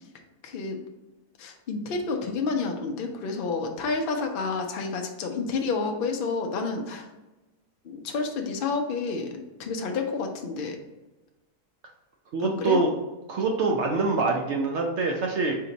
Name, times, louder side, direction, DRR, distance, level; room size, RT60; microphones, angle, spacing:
voice 1, 0.4-0.8 1.4-7.1 7.8-10.8 12.4-12.8, left 4 dB, 80° left, 3 dB, 0.4 m, -30 dB
voice 2, 12.3-12.9 13.3-15.6, right 3 dB, 70° right, 1 dB, 0.6 m, -25 dB
4.3 x 2.9 x 3.8 m, 1.1 s
omnidirectional pair, 1.7 m